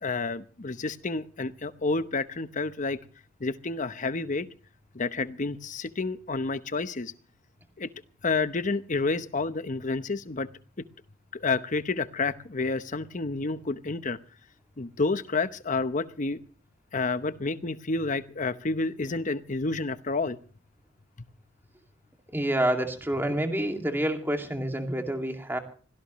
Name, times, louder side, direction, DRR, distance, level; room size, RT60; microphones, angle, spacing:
voice 1, 0.0-3.0 3.4-4.5 4.9-7.1 7.8-7.9 8.2-10.5 10.8-10.9 11.4-14.2 14.8-16.4 16.9-20.4, left 3 dB, 40° left, 12 dB, 0.9 m, -29 dB
voice 2, 22.3-25.6, right 1 dB, 10° right, 4 dB, 2.3 m, -28 dB
25.0 x 17.5 x 3.1 m, 0.42 s
head